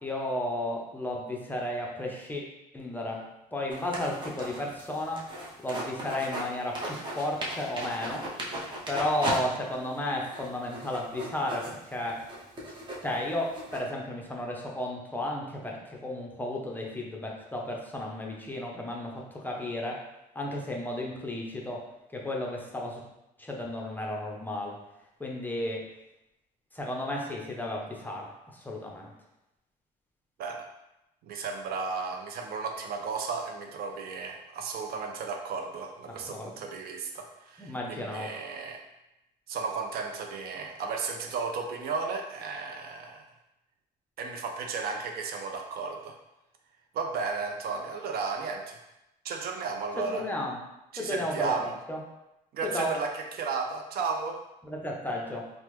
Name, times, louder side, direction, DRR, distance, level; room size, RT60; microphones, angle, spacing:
voice 1, 0.0-2.4 2.7-3.3 3.5-5.3 5.6-8.3 8.9-12.3 13.0-20.0 20.3-21.9 22.1-23.0 23.4-24.8 25.2-25.9 26.7-29.1 36.3-36.6 37.6-38.3 50.0-50.6 51.0-52.0 52.6-53.0 54.6-55.5, left 1 dB, 10° left, -1 dB, 0.5 m, -33 dB
sound 1, 3.7-6.5 6.7-9.4 9.7-9.8 10.2-13.8, right 1 dB, 30° right, 0.7 m, -36 dB
voice 2, 31.2-38.8 39.5-43.3 44.2-46.2 46.9-48.8 49.2-50.2 50.9-51.7 52.5-54.4, right 4 dB, 65° right, 3 dB, 0.5 m, -34 dB
3.3 x 2.1 x 3.0 m, 0.90 s
cardioid pair, 110°, 17 cm